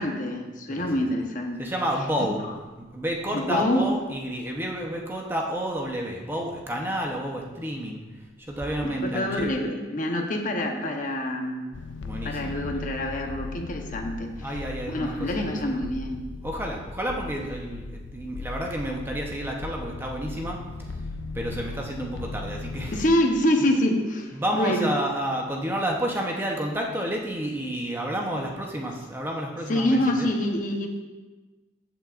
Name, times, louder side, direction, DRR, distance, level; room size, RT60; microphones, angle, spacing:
voice 1, 0.0-1.6 3.3-3.9 8.8-11.6 12.2-14.3 14.9-16.2 22.9-24.9 29.7-30.9, left 1 dB, 45° left, 2 dB, 0.9 m, -26 dB
voice 2, 1.6-2.4 2.8-9.5 12.0-12.6 14.4-15.3 15.7-15.8 16.4-21.0 21.3-23.0 24.3-30.3, right 1 dB, 10° right, 0 dB, 0.8 m, -30 dB
sound 1, 11.7-23.1, left 3 dB, 85° left, 0.5 m, -37 dB
14.5 x 6.0 x 2.5 m, 1.2 s
head